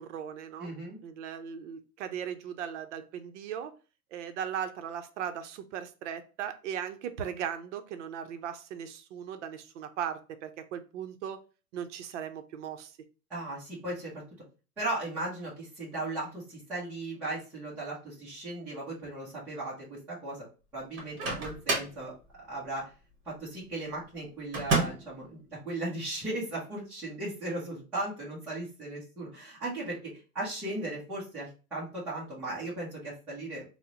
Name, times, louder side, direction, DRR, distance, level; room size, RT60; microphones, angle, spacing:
voice 1, 0.0-0.7 1.0-3.7 4.1-11.4 11.7-13.0, right 8 dB, 55° right, 0.5 m, -38 dB
voice 2, 0.6-1.0 13.3-14.2 14.8-20.5 20.7-22.1 22.5-22.9 23.3-33.6, right 2 dB, 5° right, 0.4 m, -37 dB
Microwave oven, 21.0-22.0 24.5-25.2, right 3 dB, 25° right, 0.9 m, -30 dB
3.5 x 2.0 x 2.7 m
hypercardioid pair, 135°, 45 cm